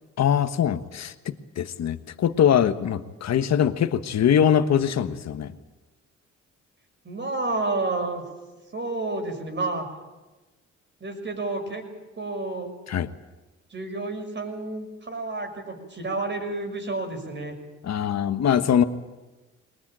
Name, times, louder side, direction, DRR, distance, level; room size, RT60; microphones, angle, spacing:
voice 1, 0.2-5.5 12.9-13.1 17.8-18.8, left 9 dB, 60° left, 10 dB, 1.4 m, -22 dB
voice 2, 7.0-8.2 8.7-9.9 11.0-11.8 12.2-12.7 13.7-17.5, right 2 dB, 40° right, 4 dB, 6.3 m, -30 dB
22.0 x 20.0 x 9.0 m, 1.1 s
cardioid pair, 90°, 30 cm